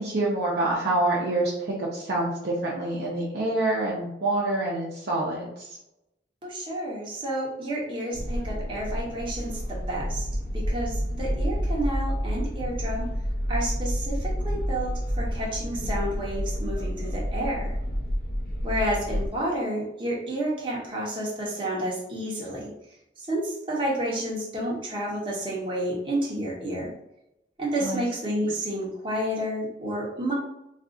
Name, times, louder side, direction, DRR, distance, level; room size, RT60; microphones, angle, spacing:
voice 1, 0.0-5.8 27.8-28.0 28.4-28.5, right 2 dB, 65° right, -5 dB, 0.7 m, -27 dB
voice 2, 6.4-10.3 10.5-13.1 13.5-17.7 18.6-22.7 23.2-26.9 27.6-30.3, right 1 dB, 30° right, -4 dB, 0.8 m, -30 dB
sound 1, 8.1-19.3, equal, 55° left, 0.6 m, -29 dB
2.5 x 2.3 x 3.7 m, 0.84 s
head